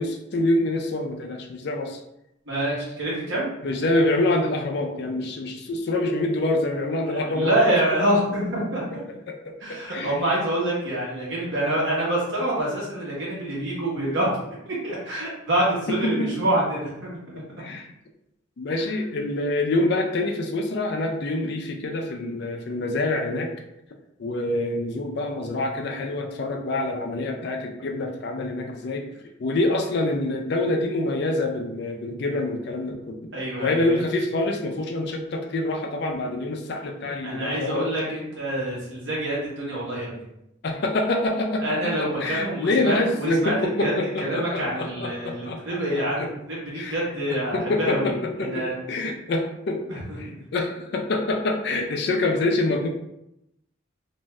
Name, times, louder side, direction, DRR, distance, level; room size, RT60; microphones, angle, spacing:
voice 1, 0.0-2.0 3.6-7.6 9.1-10.2 15.9-16.3 17.3-17.9 18.6-23.5 24.2-29.1 29.4-33.3 33.6-37.9 40.6-41.7 42.2-45.6 46.2-46.3 46.7-49.8 50.2-52.9, left 2 dB, 55° left, 3 dB, 0.4 m, -26 dB
voice 2, 2.5-3.5 7.0-8.8 9.6-14.3 14.7-17.1 33.3-34.0 37.2-40.2 41.6-43.9 44.2-48.8 50.2-50.4, right 1 dB, 65° right, -5 dB, 1.1 m, -26 dB
2.6 x 2.3 x 3.1 m, 0.83 s
head